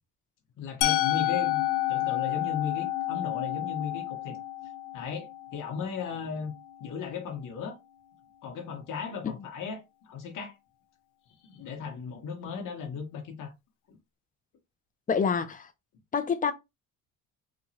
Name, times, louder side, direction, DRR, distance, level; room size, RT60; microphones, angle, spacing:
voice 1, 0.6-4.4 4.9-6.5 6.8-7.8 8.4-10.5 11.4-13.5 13.9-14.0, left 6 dB, 50° left, 0.9 m, -36 dB
Musical instrument, 0.8-6.7, left 15 dB, 75° left, 0.6 m, -30 dB
voice 2, 15.1-15.7 16.1-16.5, left 6 dB, 20° left, 0.4 m, -27 dB
2.9 x 2.2 x 2.7 m
supercardioid pair, 85°, 42 cm